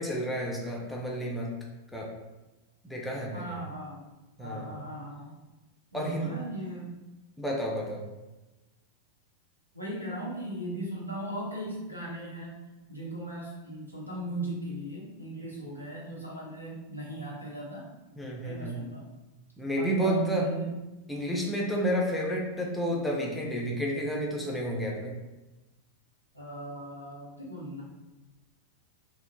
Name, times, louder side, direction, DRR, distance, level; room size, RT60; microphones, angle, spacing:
voice 1, 0.0-1.5 1.9-2.1 2.8-3.5 4.4-4.8 5.9-6.3 7.4-8.0 18.2-18.8 19.6-20.5 21.1-25.1, equal, 5° left, -2 dB, 0.5 m, -31 dB
voice 2, 3.3-4.1 4.4-5.5 5.9-6.9 9.7-12.6 12.9-17.9 18.4-19.2 19.7-20.7 26.3-27.8, right 1 dB, 85° right, -5 dB, 0.8 m, -38 dB
3.6 x 2.1 x 2.2 m, 1.0 s
figure-of-eight pair, 90°, 0 cm